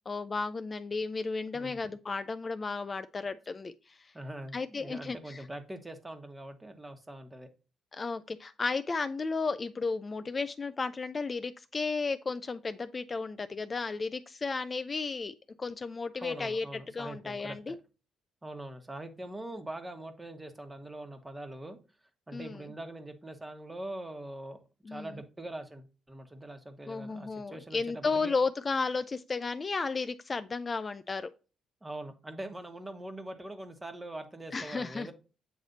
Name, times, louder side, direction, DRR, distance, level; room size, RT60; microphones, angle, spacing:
voice 1, 0.1-4.0 4.5-5.4 7.9-16.7 16.9-17.8 22.3-22.6 24.9-25.1 26.9-31.3 34.5-35.1, left 4 dB, 30° left, 0.4 m, -33 dB
voice 2, 4.1-7.5 16.2-17.8 18.4-21.8 22.3-24.6 24.9-28.3 31.8-35.1, right 1 dB, 15° right, 1.2 m, -43 dB
7.8 x 3.3 x 3.9 m
cardioid pair, 90°, 0 cm